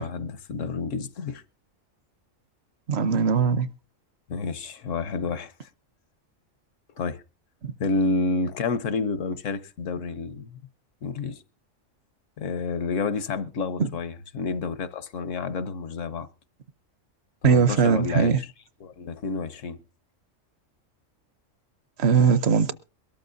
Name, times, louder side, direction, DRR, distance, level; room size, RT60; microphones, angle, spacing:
voice 1, 0.0-1.4 4.3-5.7 7.0-7.2 7.8-10.6 11.0-11.4 12.4-16.3 17.4-18.5 18.8-19.8, left 4 dB, 75° left, 1.2 m, -29 dB
voice 2, 2.9-3.7 7.6-7.7 13.8-13.9 17.4-18.4 22.0-22.7, right 6 dB, 60° right, 1.0 m, -20 dB
22.5 x 13.0 x 2.6 m
omnidirectional pair, 1.3 m